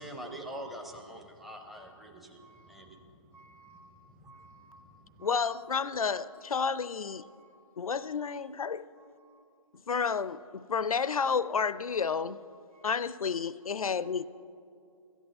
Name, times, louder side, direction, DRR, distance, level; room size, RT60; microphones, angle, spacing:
voice 1, 0.0-3.1 4.2-4.3, right 1 dB, ahead, 0.5 m, -44 dB
voice 2, 0.5-1.0 1.4-2.0 2.4-2.9 3.3-3.8 4.2-4.8 5.2-5.7 6.1-6.6 7.1-7.6 8.0-8.4 8.9-9.4 11.8-12.3 12.7-13.1 13.6-14.1, right 3 dB, 80° right, 1.8 m, -59 dB
voice 3, 5.2-7.2 7.8-8.9 9.9-12.4 12.8-14.3, left 6 dB, 85° left, 0.5 m, -31 dB
13.0 x 8.1 x 7.8 m
figure-of-eight pair, 145°, 18 cm